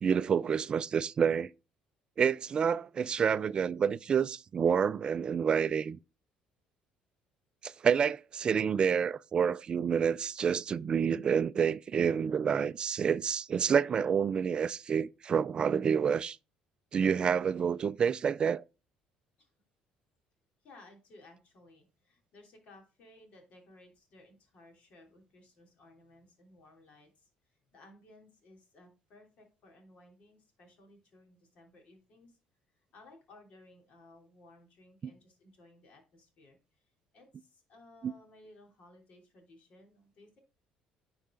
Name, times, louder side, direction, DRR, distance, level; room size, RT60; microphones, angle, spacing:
voice 1, 0.0-1.5 2.2-6.0 7.6-16.4 16.9-18.6 38.0-38.1, right 7 dB, 40° right, 0.3 m, -28 dB
voice 2, 20.6-32.4 32.7-40.4, left 2 dB, 60° left, 3.0 m, -59 dB
9.9 x 4.8 x 3.7 m
cardioid pair, 100°, 2 cm